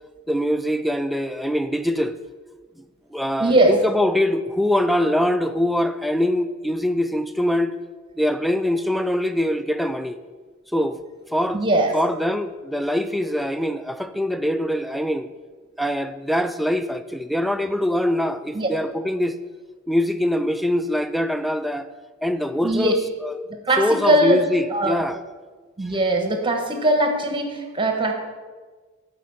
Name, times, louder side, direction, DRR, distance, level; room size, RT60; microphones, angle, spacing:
voice 1, 0.3-2.2 3.1-7.7 8.2-10.2 10.7-11.0 11.3-11.6 11.9-15.3 15.8-19.4 19.9-21.9 22.2-23.3 23.8-25.2, left 1 dB, ahead, 9 dB, 0.3 m, -23 dB
voice 2, 3.4-3.8 11.5-11.9 18.5-18.7 22.6-22.9 23.6-24.4 24.7-25.0 25.8-28.1, right 1 dB, 25° right, 4 dB, 1.2 m, -20 dB
12.5 x 4.7 x 5.8 m, 1.4 s
head